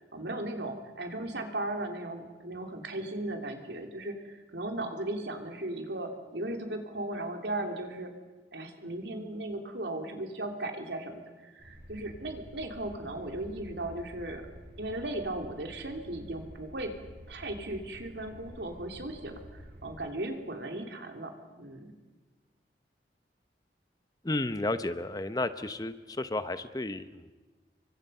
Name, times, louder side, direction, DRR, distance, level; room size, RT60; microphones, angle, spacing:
voice 1, 0.0-8.1 8.5-14.5 14.8-17.0 17.3-21.9, right 1 dB, 80° right, 4 dB, 3.0 m, -37 dB
sound 1, 11.6-19.9, equal, 60° right, 7.3 m, -50 dB
voice 2, 24.2-27.3, left 2 dB, 20° left, 11 dB, 0.7 m, -32 dB
29.0 x 24.0 x 5.5 m, 1.3 s
head